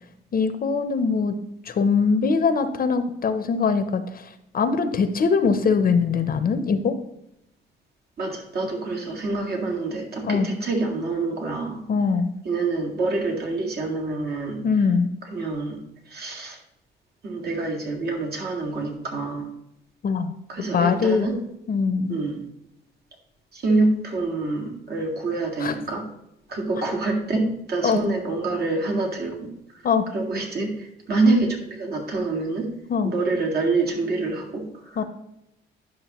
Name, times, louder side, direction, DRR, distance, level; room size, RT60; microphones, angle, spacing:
voice 1, 0.3-1.3 1.7-4.0 4.5-7.0 10.2-10.5 11.9-12.3 14.6-15.1 20.0-20.3 20.7-21.3 21.7-22.2 25.6-25.7 27.8-28.0 29.8-30.1 32.9-33.1 35.0-35.1, left 5 dB, 45° left, 9 dB, 0.7 m, -22 dB
voice 2, 8.2-11.8 12.4-14.6 15.3-15.8 16.1-16.6 17.2-19.5 20.5-21.4 22.1-22.4 23.5-26.1 26.5-29.4 30.1-30.7 31.1-32.7 33.0-35.0, right 3 dB, 55° right, 0 dB, 2.1 m, -26 dB
10.0 x 6.1 x 3.0 m, 0.82 s
cardioid pair, 90°, 20 cm